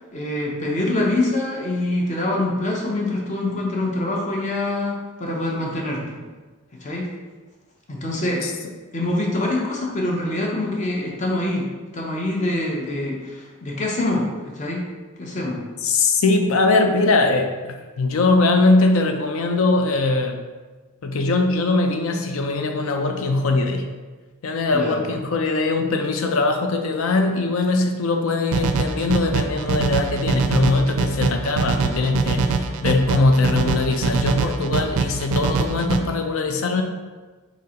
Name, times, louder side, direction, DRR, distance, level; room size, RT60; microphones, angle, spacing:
voice 1, 0.1-6.2 6.8-7.1 7.9-8.4 8.9-11.7 11.9-14.3 14.6-14.8 15.2-15.6 24.7-25.0, left 1 dB, 35° left, -1 dB, 0.7 m, -25 dB
voice 2, 15.8-20.4 21.0-23.9 24.4-36.8, left 3 dB, 75° left, 5 dB, 0.5 m, -21 dB
sound 1, 28.5-36.0, right 4 dB, 85° right, 0.4 m, -23 dB
4.1 x 3.7 x 2.8 m, 1.3 s
head